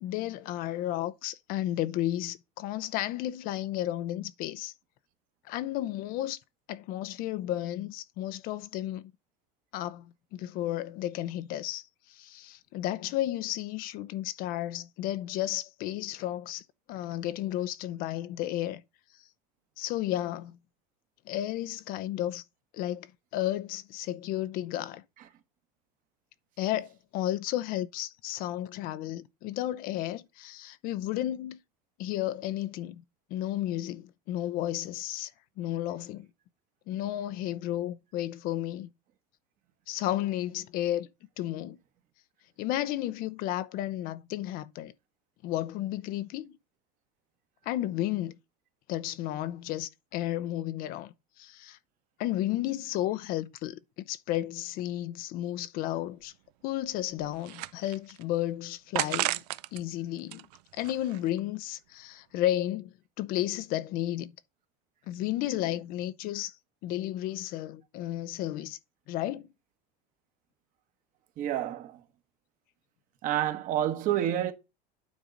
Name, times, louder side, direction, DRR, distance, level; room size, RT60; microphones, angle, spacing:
voice 1, 0.0-4.7 5.5-6.4 6.7-9.1 9.7-16.6 16.9-18.8 19.8-20.5 21.3-22.4 22.7-25.0 26.6-31.6 32.0-33.0 33.3-35.3 35.6-36.3 36.9-38.9 39.9-41.1 41.4-41.8 42.6-44.9 45.4-46.5 47.7-48.4 48.9-51.8 52.2-53.8 54.0-56.3 56.6-59.4 59.7-60.4 60.7-64.3 65.1-66.6 66.8-68.8 69.1-69.5, left 13 dB, 45° left, 0.6 m, -33 dB
sound 1, 55.8-55.9 56.2-56.3 56.9-58.2 58.9-59.8 60.2-61.4, right 17 dB, 80° right, 0.6 m, -34 dB
voice 2, 71.4-72.0 73.2-74.5, right 11 dB, 40° right, 1.2 m, -29 dB
9.4 x 3.8 x 5.1 m
supercardioid pair, 145°, 20 cm